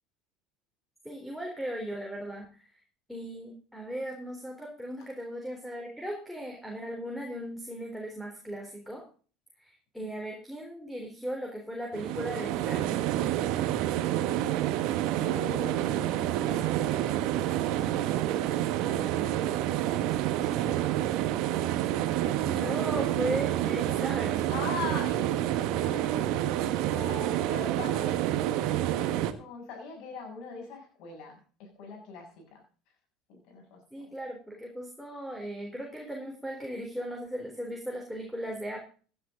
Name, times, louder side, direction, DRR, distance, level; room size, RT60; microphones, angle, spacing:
voice 1, 1.0-2.5 3.1-9.0 9.6-13.0 22.4-24.6 33.9-38.8, right 1 dB, ahead, 1 dB, 3.9 m, -37 dB
sound 1, 11.9-29.3, right 12 dB, 60° right, 1.3 m, -28 dB
voice 2, 15.2-16.7 17.7-20.8 24.5-32.6 33.3-34.1, left 4 dB, 60° left, 2 dB, 7.4 m, -43 dB
16.5 x 10.5 x 3.9 m, 0.40 s
hypercardioid pair, 75°, 0 cm